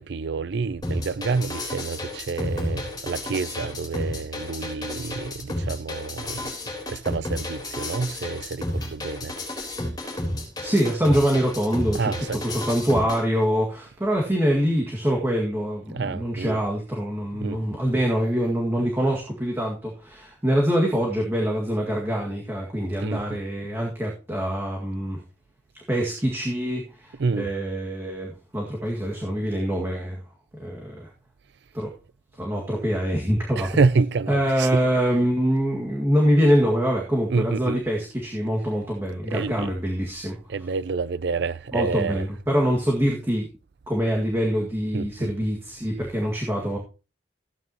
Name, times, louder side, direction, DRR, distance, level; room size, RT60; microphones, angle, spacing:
voice 1, 0.0-6.5 6.9-9.3 11.9-12.4 15.9-16.6 17.3-17.6 23.0-23.2 27.2-27.5 33.6-34.8 37.3-37.8 39.3-39.7 40.5-42.2 44.9-45.3, right 4 dB, 65° right, 0.5 m, -28 dB
sound 1, 0.8-13.2, left 1 dB, 25° left, 3.8 m, -32 dB
voice 2, 10.6-25.2 25.7-30.2 30.5-31.1 31.7-31.9 32.4-33.8 34.3-40.4 41.7-43.5 43.9-46.8, equal, 15° right, 1.9 m, -24 dB
15.0 x 9.3 x 2.9 m
head